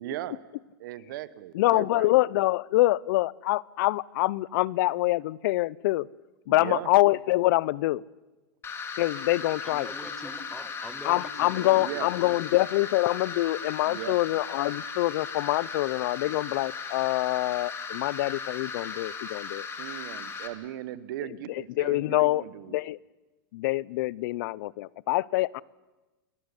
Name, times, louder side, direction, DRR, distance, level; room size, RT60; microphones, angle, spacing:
voice 1, 0.0-0.3 0.8-2.1 6.5-6.9 11.8-12.1 13.9-14.2 19.8-22.8, right 14 dB, 65° right, 1.3 m, -38 dB
voice 2, 1.6-6.1 6.5-8.0 8.9-9.9 11.0-19.7 21.5-22.4 22.7-23.0 23.5-25.6, left 18 dB, 60° left, 0.7 m, -25 dB
sound 1, 8.6-20.5, left 5 dB, 20° left, 2.6 m, -37 dB
voice 3, 9.6-12.3, left 1 dB, 5° left, 2.1 m, -44 dB
29.0 x 13.0 x 9.8 m
supercardioid pair, 135°, 12 cm